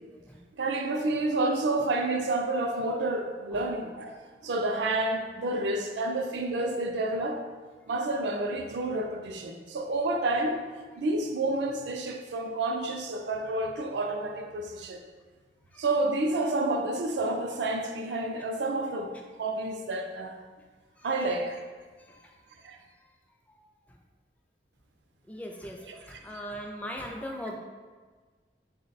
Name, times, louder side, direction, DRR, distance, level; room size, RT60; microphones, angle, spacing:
voice 1, 0.6-4.1 4.4-7.4 7.9-10.6 11.0-15.0 15.8-20.3 21.0-21.6 22.6-22.8 25.9-26.2, right 2 dB, 80° right, 4 dB, 0.4 m, -29 dB
voice 2, 25.3-25.8 26.2-27.6, equal, 10° left, 1 dB, 0.3 m, -37 dB
4.0 x 2.1 x 3.9 m, 1.4 s
head